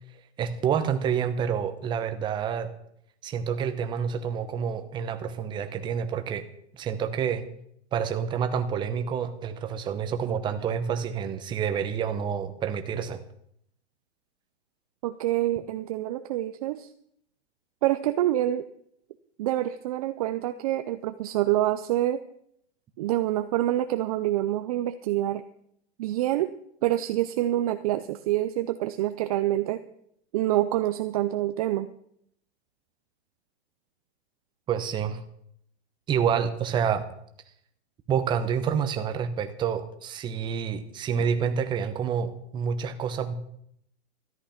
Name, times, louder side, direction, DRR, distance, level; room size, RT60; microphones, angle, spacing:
voice 1, 0.4-2.7 3.2-6.4 6.7-7.4 7.9-13.2 34.7-35.2 36.1-37.1 38.1-43.4, right 7 dB, 15° right, 8 dB, 0.8 m, -28 dB
voice 2, 15.0-16.9 17.8-18.7 19.4-22.2 23.0-25.4 26.0-26.5 26.8-29.8 30.3-31.9, right 14 dB, 35° right, 10 dB, 0.5 m, -26 dB
13.5 x 11.0 x 5.7 m, 0.72 s
hypercardioid pair, 155°, 33 cm